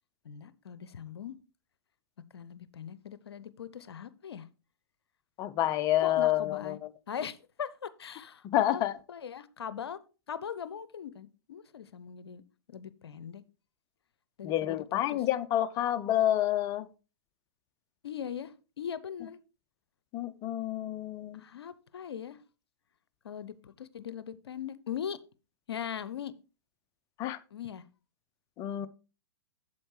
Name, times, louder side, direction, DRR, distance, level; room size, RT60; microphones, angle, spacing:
voice 1, 0.2-1.3 2.3-4.5 6.0-6.8 7.1-8.8 9.1-10.0 10.3-12.4 12.7-13.4 14.4-14.8 15.1-15.2 18.0-19.4 21.4-22.4 23.2-25.2 25.7-26.3 27.5-27.8, left 8 dB, 65° left, 0.6 m, -40 dB
voice 2, 5.4-6.8 8.5-8.9 14.4-16.9 20.1-21.4 27.2-27.4 28.6-28.9, left 13 dB, 25° left, 0.5 m, -28 dB
8.6 x 7.4 x 3.2 m
figure-of-eight pair, 110°, 14 cm